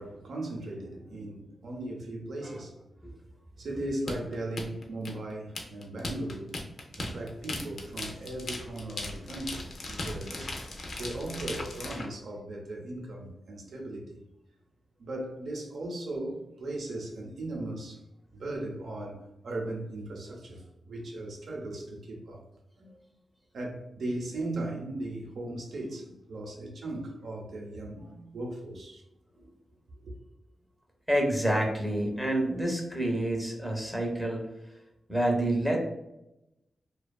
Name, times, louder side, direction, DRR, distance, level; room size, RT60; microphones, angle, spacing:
voice 1, 0.0-2.9 3.6-6.5 7.0-10.5 11.0-14.1 15.0-18.0 18.3-22.4 22.8-23.0 23.5-29.0 30.0-30.1, right 1 dB, 75° right, 0.6 m, -37 dB
sound 1, 4.1-12.1, left 2 dB, 55° left, 0.4 m, -37 dB
voice 2, 31.1-34.4 35.1-35.8, right 1 dB, ahead, 0.5 m, -28 dB
2.5 x 2.3 x 2.2 m
wide cardioid pair, 145°, 0 cm